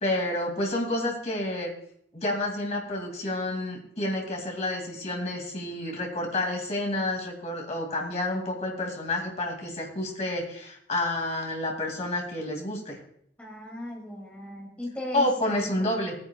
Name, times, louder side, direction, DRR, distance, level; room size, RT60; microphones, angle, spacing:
voice 1, 0.0-1.7 2.1-13.0 15.1-16.1, left 1 dB, 35° left, 1 dB, 2.3 m, -29 dB
voice 2, 13.4-15.9, left 1 dB, 5° left, -3 dB, 2.3 m, -38 dB
18.0 x 9.7 x 2.3 m, 0.69 s
head